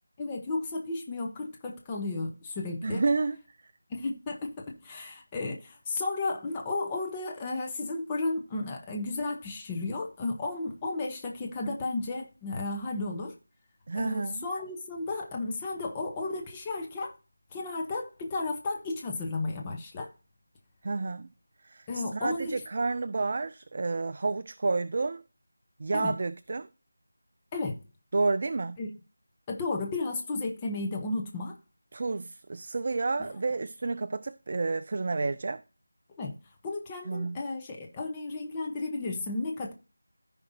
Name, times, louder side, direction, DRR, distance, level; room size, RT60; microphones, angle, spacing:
voice 1, 0.2-3.0 3.9-13.3 13.9-17.1 17.5-20.1 21.9-22.5 25.9-26.1 27.5-27.8 28.8-28.9 29.5-31.5 36.2-36.3 36.6-39.7, left 3 dB, 15° left, 0.8 m, -33 dB
voice 2, 2.8-3.4 13.9-14.5 20.8-21.3 21.6-25.2 25.8-26.7 28.1-28.8 31.9-35.6 37.1-37.4, right 3 dB, 35° right, 0.3 m, -30 dB
14.5 x 5.2 x 2.6 m
figure-of-eight pair, 175°, 0 cm